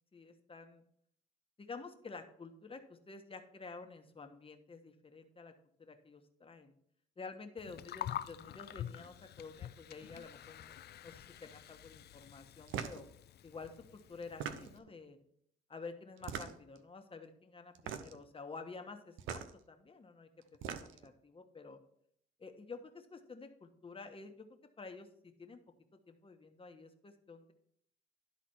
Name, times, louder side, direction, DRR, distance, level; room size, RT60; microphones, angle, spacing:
voice 1, 0.1-0.8 1.6-5.5 5.8-6.7 7.2-10.8 11.0-13.1 13.4-15.2 15.7-21.8 22.4-24.5 24.8-25.6 26.1-27.5, left 4 dB, 30° left, 5 dB, 1.2 m, -50 dB
Gurgling, 7.6-14.8, left 11 dB, 55° left, 0.4 m, -47 dB
sound 1, 12.7-13.0 14.2-14.9 16.2-16.8 17.7-18.2 19.2-19.5 20.4-21.1, right 8 dB, 85° right, 0.7 m, -41 dB
12.0 x 4.1 x 4.4 m, 0.67 s
cardioid pair, 90°, 20 cm